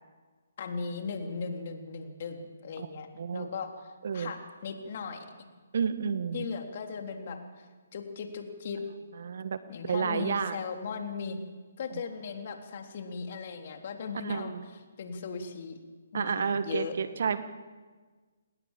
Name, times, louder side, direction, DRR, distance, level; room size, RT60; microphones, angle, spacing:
voice 1, 0.6-3.1 3.3-5.3 6.3-7.7 7.9-8.8 9.7-11.4 11.8-15.8 16.1-16.9, left 5 dB, 50° left, 4 dB, 3.5 m, -38 dB
voice 2, 3.2-3.5 4.0-4.3 5.7-6.4 9.2-9.6 9.8-10.6 14.2-14.6 16.1-17.4, right 6 dB, 60° right, 12 dB, 1.6 m, -30 dB
28.0 x 19.5 x 7.5 m, 1.4 s
figure-of-eight pair, 140°, 0 cm